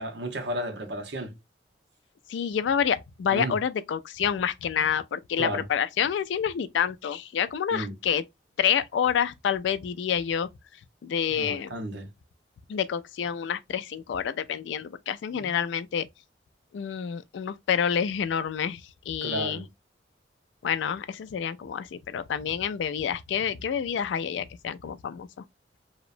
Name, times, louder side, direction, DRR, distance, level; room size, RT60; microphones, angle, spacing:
voice 1, 0.0-1.4 3.3-3.6 5.4-5.6 7.7-7.9 11.3-12.1 15.3-15.5 19.2-19.7, right 1 dB, 70° right, 0.7 m, -33 dB
voice 2, 2.3-8.2 8.6-10.5 11.0-11.7 12.7-16.1 16.7-19.6 20.6-25.4, left 8 dB, 80° left, 0.3 m, -28 dB
2.8 x 2.1 x 2.4 m
head